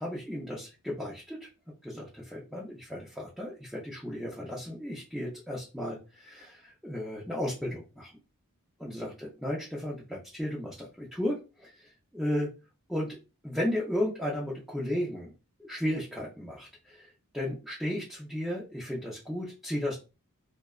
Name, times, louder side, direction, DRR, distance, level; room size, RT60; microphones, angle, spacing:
voice 1, 0.0-1.5 1.8-8.1 8.8-11.7 12.1-12.5 12.9-13.2 13.4-15.3 15.7-17.1 17.3-20.0, left 1 dB, ahead, -5 dB, 0.4 m, -34 dB
2.6 x 2.1 x 2.3 m, 0.30 s
head